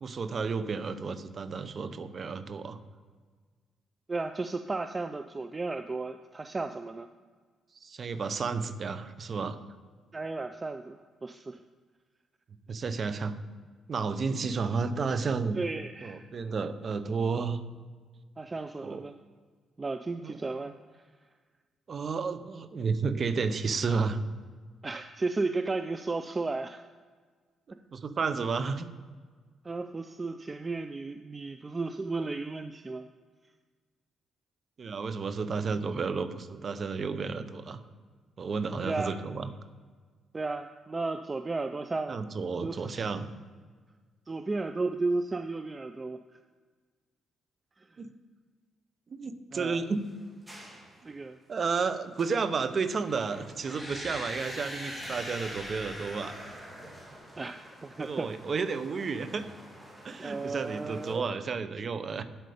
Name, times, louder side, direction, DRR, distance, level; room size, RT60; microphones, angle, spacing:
voice 1, 0.0-2.8 7.8-9.6 12.7-13.3 13.9-15.6 16.0-17.6 18.8-19.0 20.2-20.4 21.9-24.2 27.9-28.9 34.8-37.8 38.4-39.5 42.1-43.3 48.0-48.1 49.1-50.0 51.5-56.4 58.0-59.5 60.0-62.2, right 5 dB, 45° right, 11 dB, 0.7 m, -32 dB
voice 2, 4.1-7.1 10.1-11.6 14.3-14.4 15.6-16.2 18.4-19.1 19.8-21.0 24.8-26.8 27.7-27.8 29.6-33.1 38.8-39.2 40.3-42.2 42.6-43.1 44.3-46.4 47.8-47.9 49.5-49.8 51.0-51.4 57.4-58.4 60.2-61.3, right 3 dB, 25° right, 8 dB, 0.4 m, -34 dB
sound 1, 49.6-61.1, equal, 10° right, 2.6 m, -52 dB
sound 2, 53.6-57.5, left 1 dB, 20° left, 3.0 m, -41 dB
8.0 x 7.9 x 5.0 m, 1.5 s
cardioid pair, 90°, 0 cm